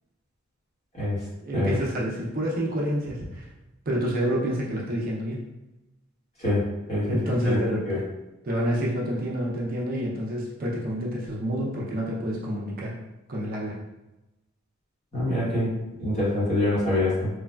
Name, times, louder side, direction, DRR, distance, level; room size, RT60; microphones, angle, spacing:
voice 1, 1.4-3.5 3.9-5.5 7.1-8.1 8.4-13.0 13.3-13.8, equal, 45° right, -4 dB, 0.5 m, -28 dB
voice 2, 6.9-7.6 7.9-8.0 15.1-15.7 16.0-17.3, left 1 dB, 30° left, -9 dB, 1.1 m, -25 dB
3.1 x 2.2 x 2.2 m, 1.0 s
head